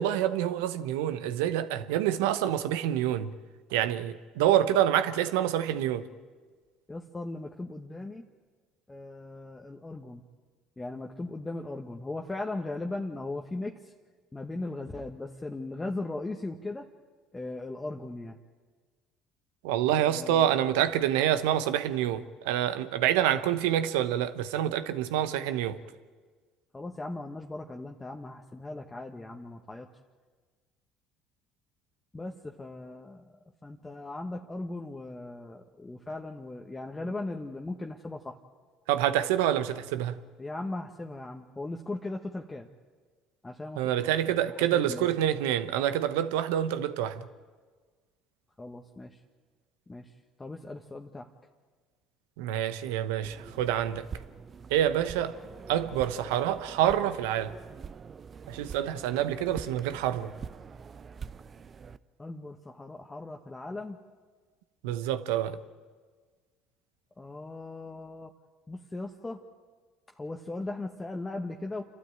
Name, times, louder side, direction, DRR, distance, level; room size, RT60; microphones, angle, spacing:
voice 1, 0.0-3.3 3.7-6.1 19.6-25.8 38.9-40.2 43.8-47.3 52.4-54.1 54.7-55.4 55.7-57.5 58.5-60.3 64.8-65.6, right 11 dB, 80° right, 1.0 m, -27 dB
voice 2, 6.9-8.3 8.9-10.2 10.8-13.9 14.3-16.9 17.3-18.4 20.0-20.6 26.7-29.9 32.1-33.2 33.6-38.4 40.4-42.7 43.4-43.8 44.3-45.1 48.6-49.2 49.9-50.1 50.4-51.3 62.2-64.0 67.2-68.3 68.7-69.4 70.2-71.8, left 2 dB, 20° left, 1.3 m, -38 dB
sound 1, 53.2-62.0, right 6 dB, 40° right, 0.7 m, -44 dB
27.5 x 12.5 x 9.0 m
hypercardioid pair, 75°, 0 cm